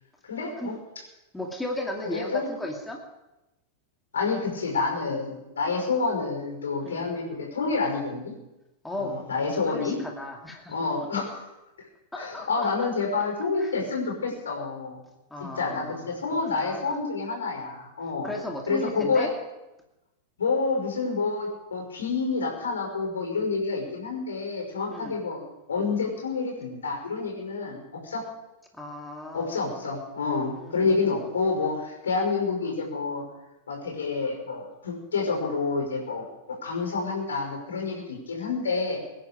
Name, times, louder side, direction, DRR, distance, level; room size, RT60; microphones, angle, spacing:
voice 1, 0.3-0.7 2.1-2.5 4.1-8.3 9.0-10.0 10.7-11.3 12.2-15.0 15.4-18.3 18.7-19.3 20.4-25.4 25.7-28.2 29.3-33.2 33.7-36.2 36.6-39.0, left 4 dB, 70° left, 1 dB, 5.8 m, -28 dB
voice 2, 1.3-3.0 6.8-7.1 8.8-10.8 11.2-11.3 12.1-12.9 13.6-13.7 15.3-16.1 16.5-17.0 18.2-19.3 24.9-25.2 28.7-29.9 30.5-31.4, left 1 dB, 5° left, 1 dB, 2.4 m, -36 dB
24.5 x 10.5 x 5.1 m, 0.99 s
figure-of-eight pair, 90°, 0 cm